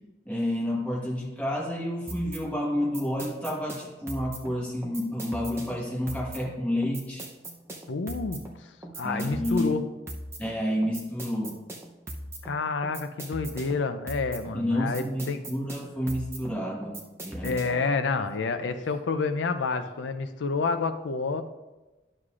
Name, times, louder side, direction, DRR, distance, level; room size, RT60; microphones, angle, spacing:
voice 1, 0.2-7.2 9.0-9.7 10.4-11.6 14.5-17.6, left 1 dB, 5° left, -3 dB, 1.3 m, -30 dB
sound 1, 2.1-17.9, right 1 dB, 15° right, 0.6 m, -41 dB
voice 2, 7.9-8.4 9.0-9.9 12.4-15.5 17.4-21.4, left 4 dB, 90° left, 9 dB, 0.5 m, -29 dB
11.0 x 6.6 x 2.4 m, 1.1 s
head